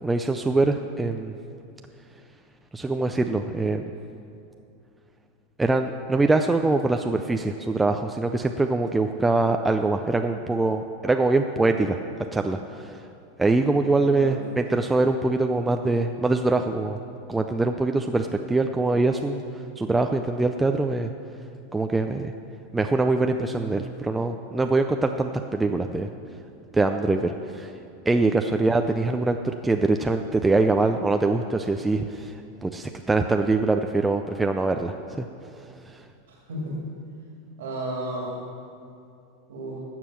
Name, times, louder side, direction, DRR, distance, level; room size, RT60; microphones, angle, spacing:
voice 1, 0.0-1.3 2.7-3.9 5.6-12.0 12.3-13.0 13.4-17.0 17.3-21.1 21.7-22.3 22.7-26.1 26.7-27.7 28.1-32.3 32.6-35.3 35.6-36.0, right 3 dB, 10° right, 5 dB, 0.4 m, -23 dB
voice 2, 36.3-36.8 37.6-38.4 39.5-39.8, right 1 dB, 85° right, -3 dB, 2.4 m, -33 dB
13.0 x 7.5 x 6.1 m, 2.6 s
hypercardioid pair, 120°, 0 cm